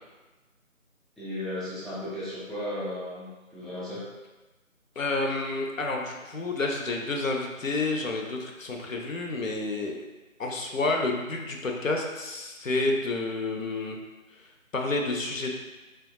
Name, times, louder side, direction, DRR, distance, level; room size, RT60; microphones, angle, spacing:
voice 1, 1.2-4.1, left 1 dB, ahead, -11 dB, 0.4 m, -35 dB
voice 2, 5.0-10.0 10.4-14.0 14.4-14.5 14.7-15.6, left 2 dB, 70° left, 2 dB, 0.6 m, -29 dB
3.4 x 2.3 x 2.6 m, 1.2 s
figure-of-eight pair, 170°, 41 cm